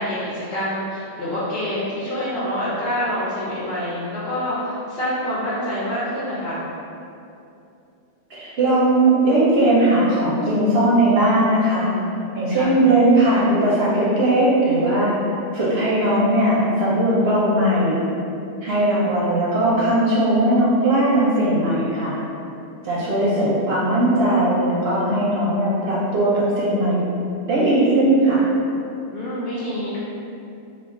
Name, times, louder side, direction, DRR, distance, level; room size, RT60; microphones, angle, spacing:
voice 1, 0.0-6.7 12.5-12.7 18.8-19.1 29.1-30.0, equal, 65° left, -9 dB, 0.8 m, -26 dB
voice 2, 8.3-11.9 12.3-15.2 15.5-18.0 18.6-22.2 22.8-27.1 27.4-28.4, right 1 dB, 65° right, -7 dB, 0.8 m, -18 dB
2.4 x 2.3 x 3.5 m, 2.7 s
omnidirectional pair, 1.3 m